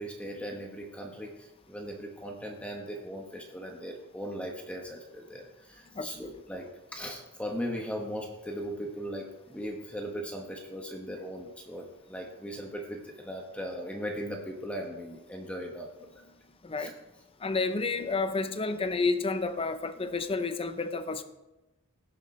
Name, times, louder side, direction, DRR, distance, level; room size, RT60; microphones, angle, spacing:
voice 1, 0.0-15.9 16.8-16.9, equal, 5° left, 0 dB, 1.0 m, -38 dB
voice 2, 5.9-6.3 16.6-16.9 17.4-21.2, left 3 dB, 25° left, 9 dB, 0.6 m, -30 dB
17.0 x 6.9 x 3.2 m, 0.99 s
head